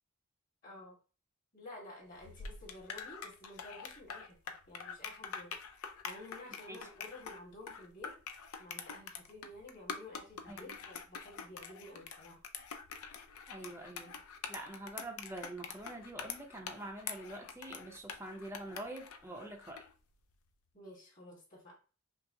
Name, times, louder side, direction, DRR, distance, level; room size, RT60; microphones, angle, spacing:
voice 1, 0.6-1.0 1.5-5.6 6.0-8.2 8.6-12.4 20.7-21.8, left 1 dB, 35° left, -3 dB, 1.8 m, -52 dB
sound 1, 2.1-19.9, left 6 dB, 75° left, 0.5 m, -45 dB
voice 2, 13.5-14.2 14.5-19.8, right 1 dB, 10° right, 2 dB, 0.6 m, -45 dB
5.6 x 2.0 x 2.7 m, 0.36 s
head